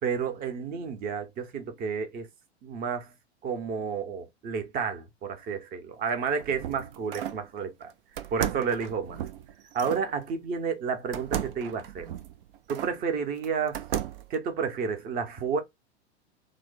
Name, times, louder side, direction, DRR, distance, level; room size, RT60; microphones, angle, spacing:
voice 1, 0.0-2.3 2.6-3.1 3.4-7.9 8.3-9.2 9.7-12.1 12.7-13.8 14.3-15.6, right 6 dB, 25° right, 0.8 m, -31 dB
sound 1, 6.1-7.4 8.2-10.1 11.1-13.0 13.4-14.3, right 10 dB, 55° right, 0.5 m, -35 dB
3.1 x 2.2 x 3.8 m
figure-of-eight pair, 90°, 33 cm